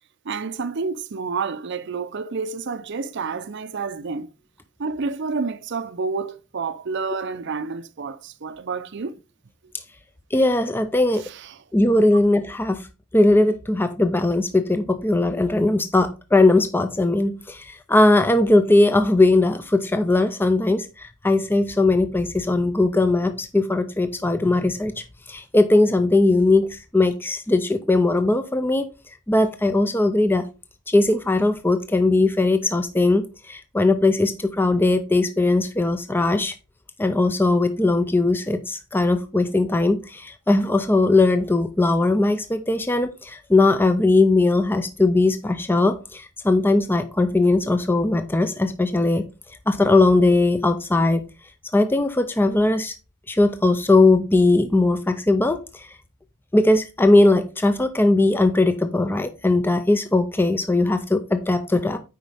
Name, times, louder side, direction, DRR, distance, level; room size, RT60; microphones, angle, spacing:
voice 1, 0.2-4.3 4.8-9.2 11.2-11.6, right 4 dB, 55° right, 0.6 m, -29 dB
voice 2, 10.3-11.2 11.7-12.8 13.1-28.8 29.3-30.5 30.9-36.5 37.0-49.3 49.7-51.2 51.7-52.9 53.3-55.9 56.5-62.0, left 2 dB, 10° left, 0.5 m, -19 dB
9.2 x 5.0 x 3.4 m
head